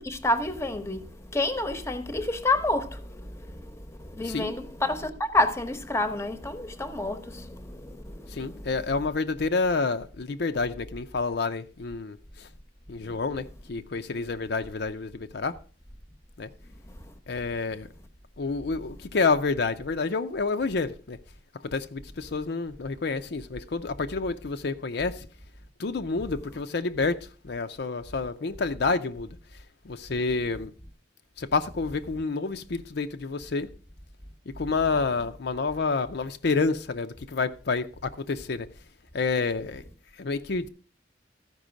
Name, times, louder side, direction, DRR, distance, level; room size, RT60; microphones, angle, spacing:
voice 1, 0.0-9.0 13.0-13.2 16.8-17.2, left 2 dB, 15° left, 0.9 m, -29 dB
voice 2, 8.3-12.5 12.9-15.6 16.4-16.5 17.3-17.9 18.4-21.2 21.6-25.3 25.8-29.3 29.8-30.7 31.4-33.7 34.6-38.7 39.1-39.8 40.2-40.7, left 4 dB, 65° left, 0.6 m, -29 dB
14.0 x 5.4 x 5.1 m
head